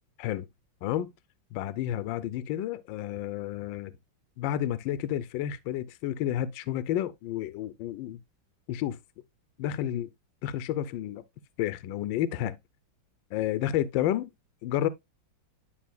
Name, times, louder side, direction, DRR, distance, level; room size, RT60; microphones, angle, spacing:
voice 1, 1.5-4.0 4.4-8.2 8.7-9.0 9.6-10.1 10.4-11.2 11.6-12.6 13.3-14.3 14.6-14.9, left 12 dB, 80° left, 1.3 m, -30 dB
10.0 x 5.9 x 2.2 m
omnidirectional pair, 2.1 m